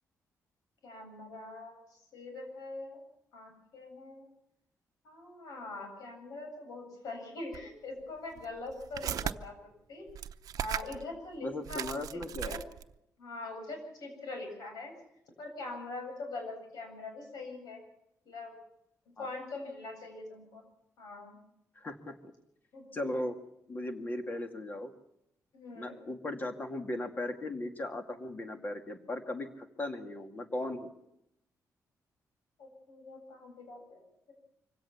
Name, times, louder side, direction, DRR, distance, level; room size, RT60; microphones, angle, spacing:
voice 1, 0.8-3.0 3.3-4.3 5.0-9.5 9.9-10.1 10.6-12.6 13.2-14.9 15.4-17.8 18.2-18.5 19.2-20.6 21.0-21.4 22.7-22.9 25.5-26.0 32.6-34.3, left 2 dB, 90° left, 3 dB, 7.9 m, -43 dB
sound 1, 7.5-7.6 8.3-9.4 10.1-11.0 11.3-11.4 11.7-12.9, right 9 dB, 70° right, 0.8 m, -37 dB
voice 2, 11.4-12.6 19.2-19.3 21.8-22.2 22.9-23.4 23.7-24.9 25.8-30.9, left 1 dB, 30° left, 5 dB, 2.3 m, -37 dB
25.0 x 17.0 x 7.2 m, 0.80 s
wide cardioid pair, 155°, 6 cm